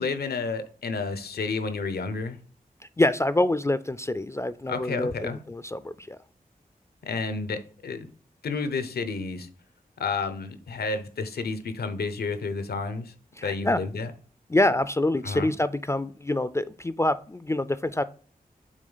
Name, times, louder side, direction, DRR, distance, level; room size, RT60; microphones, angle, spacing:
voice 1, 0.0-2.4 4.7-5.4 7.0-8.1 8.4-9.5 10.0-13.1 13.4-14.1 15.2-15.5, left 4 dB, 90° left, 0.7 m, -31 dB
voice 2, 3.0-6.2 13.4-13.8 14.5-18.0, left 1 dB, 20° left, 0.3 m, -26 dB
6.3 x 3.9 x 3.9 m
cardioid pair, 55°, 16 cm